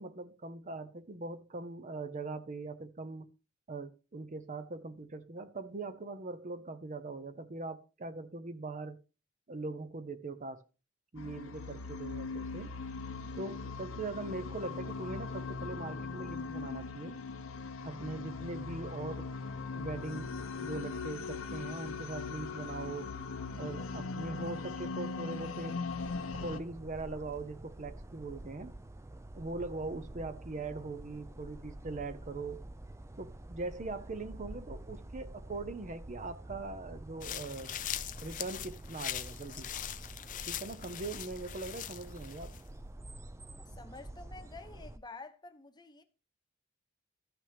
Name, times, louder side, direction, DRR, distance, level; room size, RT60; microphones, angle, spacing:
voice 1, 0.0-3.3 3.7-9.0 9.5-10.6 11.1-12.7 13.4-17.2 17.8-19.3 19.7-20.3 20.6-23.1 23.6-25.8 26.3-28.7 29.3-32.6 33.2-37.8 38.2-39.7 40.5-42.5, right 3 dB, 40° right, 0.8 m, -41 dB
sound 1, 11.2-26.6, left 4 dB, 85° left, 0.7 m, -40 dB
sound 2, 26.0-45.0, right 1 dB, 15° right, 0.5 m, -48 dB
sound 3, 37.2-42.6, left 11 dB, 40° left, 0.5 m, -41 dB
voice 2, 43.6-46.0, left 3 dB, 20° left, 0.9 m, -49 dB
13.5 x 6.0 x 3.5 m
head